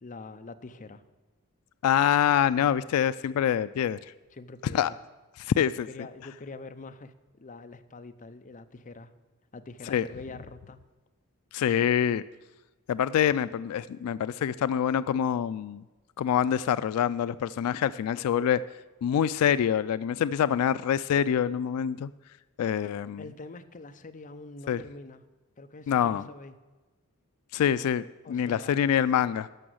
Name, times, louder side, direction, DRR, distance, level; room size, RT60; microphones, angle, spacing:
voice 1, 0.0-1.0 4.3-5.0 5.9-9.1 9.5-10.8 23.2-25.2 25.6-26.5 28.2-28.8, left 3 dB, 35° left, 9 dB, 0.6 m, -44 dB
voice 2, 1.8-4.1 4.7-4.9 5.4-5.9 9.9-10.0 11.5-12.2 12.9-15.8 16.2-18.6 19.0-22.1 22.6-23.2 24.7-24.8 25.9-26.2 27.5-29.5, left 9 dB, 80° left, 16 dB, 0.3 m, -25 dB
12.5 x 6.2 x 7.9 m, 1.2 s
head